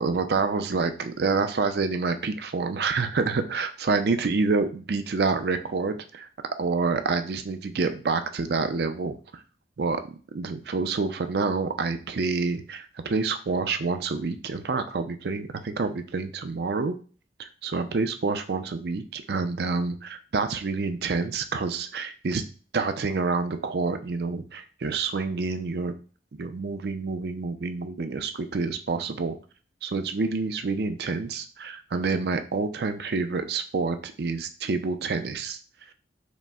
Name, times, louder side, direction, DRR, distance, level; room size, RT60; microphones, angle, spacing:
voice 1, 0.0-6.3 6.6-9.4 9.8-10.0 10.3-17.0 17.4-22.4 22.7-25.9 26.4-29.4 29.8-35.6, right 4 dB, 60° right, 9 dB, 0.5 m, -28 dB
5.0 x 2.1 x 3.4 m, 0.38 s
head